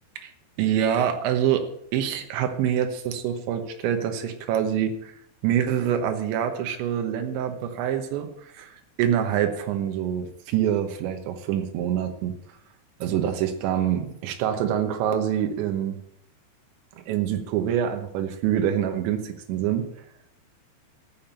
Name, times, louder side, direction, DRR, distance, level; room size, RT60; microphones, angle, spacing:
voice 1, 0.6-1.7 1.9-5.2 5.4-12.3 13.0-16.0 17.1-19.9, right 9 dB, 85° right, 6 dB, 3.5 m, -25 dB
14.0 x 5.9 x 8.9 m, 0.71 s
omnidirectional pair, 5.1 m